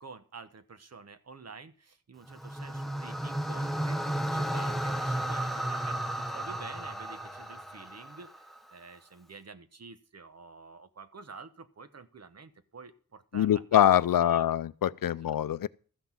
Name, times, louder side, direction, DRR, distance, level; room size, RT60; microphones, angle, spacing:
voice 1, 0.0-4.0 4.3-13.9 14.2-14.5 15.1-15.3, right 4 dB, 50° right, 1.1 m, -49 dB
sound 1, 2.3-8.6, right 1 dB, ahead, 0.9 m, -33 dB
voice 2, 13.3-15.7, left 11 dB, 75° left, 0.5 m, -24 dB
14.0 x 6.1 x 7.4 m
wide cardioid pair, 115°, 34 cm